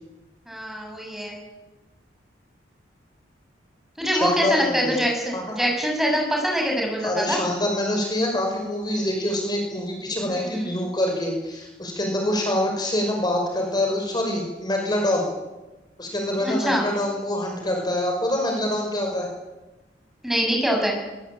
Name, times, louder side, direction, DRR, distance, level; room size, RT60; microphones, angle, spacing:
voice 1, 0.5-1.4 4.0-7.4 10.3-10.7 16.4-16.9 20.2-21.0, equal, ahead, 0 dB, 6.8 m, -24 dB
voice 2, 4.1-5.0 5.3-5.7 7.0-15.3 16.0-19.3, left 1 dB, 25° left, 1 dB, 5.8 m, -25 dB
22.5 x 22.5 x 9.0 m, 1.1 s
head